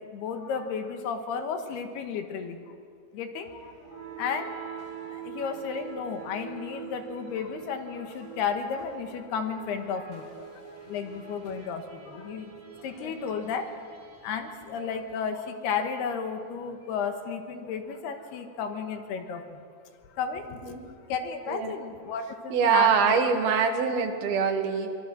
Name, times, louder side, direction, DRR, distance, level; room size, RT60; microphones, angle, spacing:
voice 1, 0.1-2.6 3.1-3.5 4.2-4.5 5.3-10.2 10.9-12.5 12.8-13.6 14.2-19.4 20.2-20.4 21.1-23.2, left 6 dB, 75° left, 6 dB, 3.3 m, -33 dB
sound 1, 3.5-15.4, right 7 dB, 40° right, 4.1 m, -45 dB
voice 2, 22.5-24.9, right 6 dB, 70° right, 5 dB, 3.2 m, -24 dB
24.0 x 24.0 x 6.2 m, 2.3 s
omnidirectional pair, 4.8 m